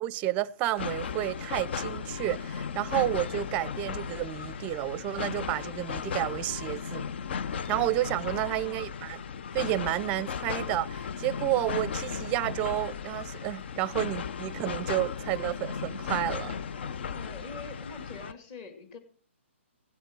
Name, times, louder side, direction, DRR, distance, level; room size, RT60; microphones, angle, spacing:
voice 1, 0.0-7.1 7.7-9.2 9.5-16.6, right 14 dB, 20° right, 0.6 m, -31 dB
sound 1, 0.8-18.3, left 6 dB, 55° left, 0.7 m, -36 dB
voice 2, 8.2-8.9 17.1-19.0, left 4 dB, 30° left, 2.5 m, -44 dB
16.5 x 11.0 x 4.6 m
hypercardioid pair, 145°, 7 cm